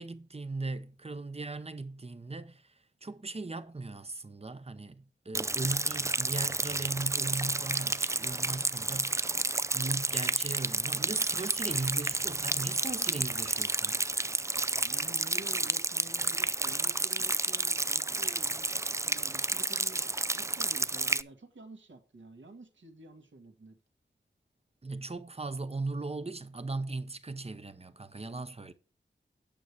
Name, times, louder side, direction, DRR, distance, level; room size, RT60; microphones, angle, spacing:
voice 1, 0.0-2.7 3.0-9.3 9.7-14.0 24.8-28.7, right 3 dB, 30° right, 0.9 m, -38 dB
Rain, 5.3-21.2, right 2 dB, 15° right, 0.4 m, -31 dB
voice 2, 14.8-18.7 19.0-23.8, right 2 dB, 75° right, 2.1 m, -50 dB
9.1 x 7.0 x 4.7 m
wide cardioid pair, 70°, 20 cm